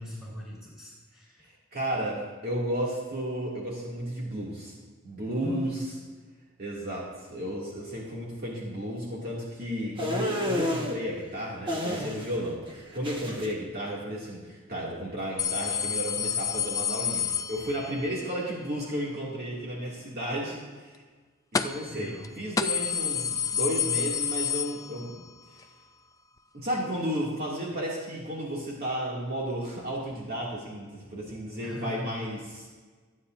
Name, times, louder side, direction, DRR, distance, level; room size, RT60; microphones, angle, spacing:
voice 1, 0.0-1.4 5.4-5.8 21.9-22.3 31.6-32.1, left 1 dB, ahead, -6 dB, 4.5 m, -40 dB
voice 2, 1.7-4.7 5.0-5.9 6.6-21.0 21.5-25.2 25.5-25.6 26.5-32.7, equal, 45° right, -5 dB, 2.4 m, -33 dB
sound 1, 10.0-10.9 11.7-12.4 12.7-13.5, equal, 25° right, 1.3 m, -30 dB
sound 2, 15.4-18.1 21.5-21.9 22.2-22.3 22.6-25.3 25.6-25.7 26.7-26.8, left 7 dB, 15° left, 0.3 m, -29 dB
24.5 x 8.6 x 2.6 m, 1.4 s
head